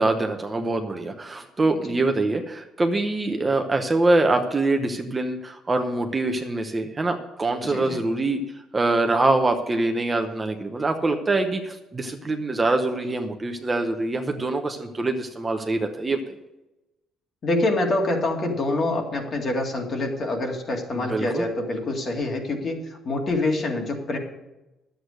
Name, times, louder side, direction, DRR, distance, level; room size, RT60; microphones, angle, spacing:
voice 1, 0.0-8.4 8.7-16.3 20.9-21.4, right 2 dB, 20° right, 5 dB, 0.9 m, -24 dB
voice 2, 7.6-8.0 17.4-24.2, left 2 dB, 40° left, 2 dB, 2.2 m, -26 dB
11.0 x 8.1 x 6.5 m, 0.99 s
cardioid pair, 130°, 0 cm